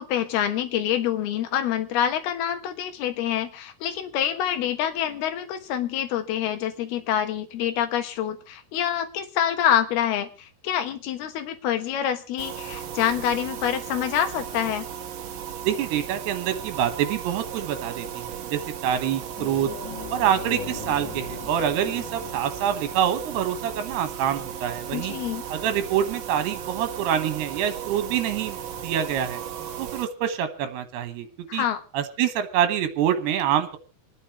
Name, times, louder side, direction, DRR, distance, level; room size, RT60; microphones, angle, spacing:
voice 1, 0.0-14.9 24.9-25.4 31.5-31.8, left 10 dB, 75° left, 8 dB, 3.1 m, -26 dB
sound 1, 12.4-30.1, right 9 dB, 60° right, 2.6 m, -36 dB
voice 2, 15.7-19.7 20.1-25.1 25.5-28.6 28.8-29.4 29.8-31.3 31.5-31.7 31.9-33.8, right 10 dB, 85° right, 9 dB, 3.4 m, -26 dB
sound 2, 19.4-28.3 28.6-28.8 30.9-31.0, left 6 dB, 50° left, 1.4 m, -42 dB
28.0 x 9.8 x 3.2 m, 0.30 s
omnidirectional pair, 4.7 m